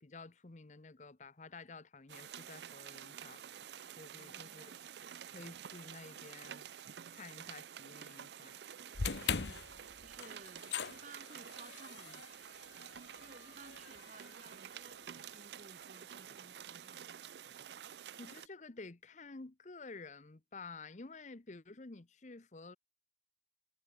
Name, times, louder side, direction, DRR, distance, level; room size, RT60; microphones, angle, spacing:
voice 1, 0.0-3.4 4.0-4.7 5.2-6.7 7.1-8.6 18.2-22.8, left 3 dB, 45° left, 0.9 m, -51 dB
sound 1, 2.1-18.5, right 9 dB, 70° right, 0.5 m, -50 dB
voice 2, 4.1-4.9 9.2-12.2 13.1-17.0, right 3 dB, 45° right, 1.5 m, -58 dB
sound 2, 8.9-15.2, left 6 dB, 80° left, 0.9 m, -42 dB
head